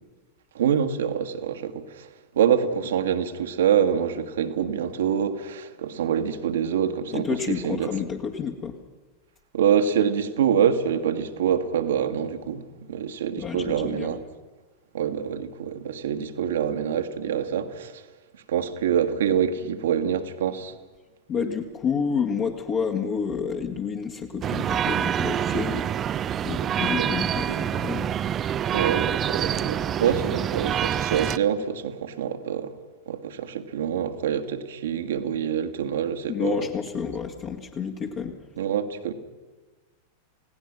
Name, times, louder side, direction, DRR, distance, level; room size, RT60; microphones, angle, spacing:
voice 1, 0.6-2.1 2.4-7.9 9.5-14.2 14.9-18.0 18.5-20.7 27.0-27.1 27.5-27.6 28.7-32.7 33.1-36.7 38.6-39.1, right 8 dB, 60° right, 1.6 m, -25 dB
voice 2, 7.1-8.8 13.4-14.2 21.3-25.9 26.4-28.1 36.3-38.4, left 6 dB, 35° left, 1.9 m, -29 dB
sound 1, 24.4-31.4, right 9 dB, 25° right, 0.6 m, -26 dB
29.0 x 17.5 x 6.1 m
figure-of-eight pair, 90°, 0 cm